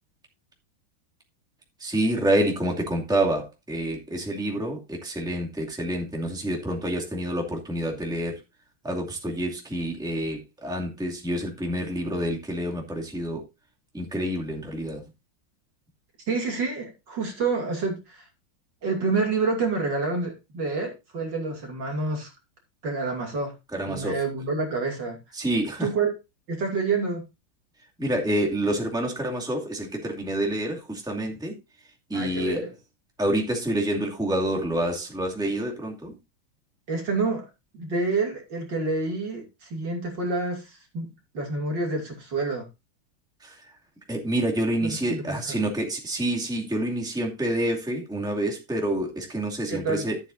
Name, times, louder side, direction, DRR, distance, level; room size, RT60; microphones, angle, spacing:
voice 1, 1.8-8.4 8.8-13.4 13.9-15.0 23.7-24.2 25.3-25.9 28.0-31.5 32.1-32.7 33.2-36.2 43.4-43.6 44.1-50.2, right 1 dB, ahead, 2.3 m, -28 dB
voice 2, 16.3-18.3 18.8-22.3 22.8-23.5 23.9-25.2 25.8-26.1 26.5-27.2 32.1-32.7 36.9-37.5 37.7-42.7 44.8-45.6 49.7-50.0, right 3 dB, 60° right, 3.3 m, -28 dB
13.5 x 8.2 x 2.7 m
omnidirectional pair, 2.2 m